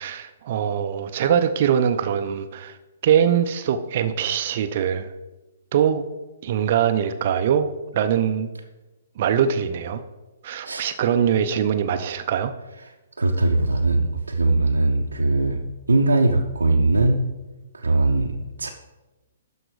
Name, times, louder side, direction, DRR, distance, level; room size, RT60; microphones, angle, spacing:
voice 1, 0.0-2.8 3.0-5.1 5.7-6.0 6.4-8.5 9.2-10.0 10.4-12.5, right 8 dB, 45° right, 9 dB, 0.5 m, -22 dB
voice 2, 13.2-15.6 15.9-17.2 17.7-18.3 18.6-18.7, right 2 dB, 80° right, 0 dB, 0.7 m, -20 dB
12.0 x 4.4 x 5.0 m, 1.1 s
figure-of-eight pair, 120°, 0 cm